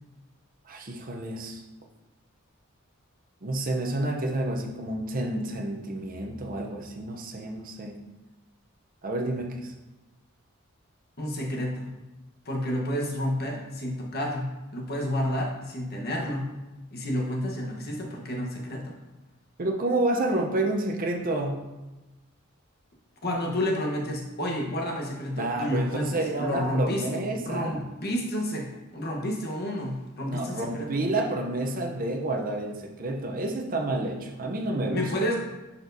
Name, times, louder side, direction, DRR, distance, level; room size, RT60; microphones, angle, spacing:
voice 1, 0.7-1.6 3.4-7.9 9.0-9.7 19.6-21.6 25.4-27.8 30.2-35.1, right 2 dB, 40° right, 2 dB, 0.7 m, -29 dB
voice 2, 11.2-11.9 12.4-16.5 16.9-19.0 23.2-28.7 28.9-31.0 34.9-35.4, equal, 45° left, -1 dB, 1.1 m, -30 dB
10.5 x 4.3 x 2.7 m, 1.1 s
head